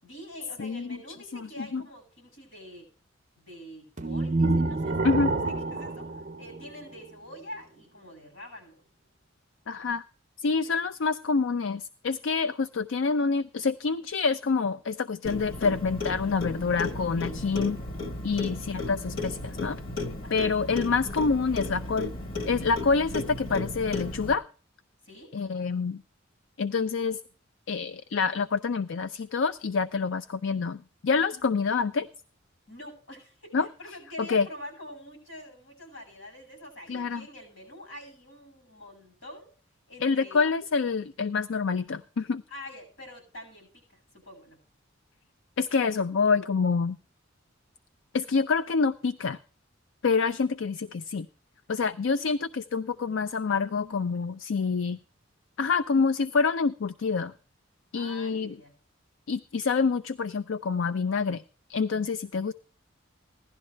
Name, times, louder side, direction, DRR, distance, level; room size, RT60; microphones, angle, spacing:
voice 1, 0.0-2.9 3.4-8.8 10.6-10.8 18.4-18.6 20.2-20.5 25.0-25.3 32.7-39.5 39.9-40.4 42.5-43.8 44.1-44.6 57.9-58.7, left 1 dB, 85° left, 3 dB, 7.1 m, -46 dB
voice 2, 0.6-1.0 1.3-1.8 5.0-5.3 9.7-10.0 10.4-17.8 18.2-19.8 20.3-22.1 22.5-24.4 25.3-26.0 26.6-27.2 27.7-32.1 33.5-33.7 34.3-34.5 36.9-37.3 40.0-42.4 45.6-47.0 48.1-49.4 50.0-51.3 51.7-55.0 55.6-57.3 57.9-58.6 59.3-61.4 61.7-62.5, left 4 dB, 70° left, 13 dB, 0.5 m, -27 dB
sound 1, 4.0-7.1, right 2 dB, 40° right, 0.5 m, -28 dB
Clock, 15.2-24.3, left 2 dB, 45° left, 1.3 m, -34 dB
16.0 x 11.5 x 3.3 m, 0.39 s
head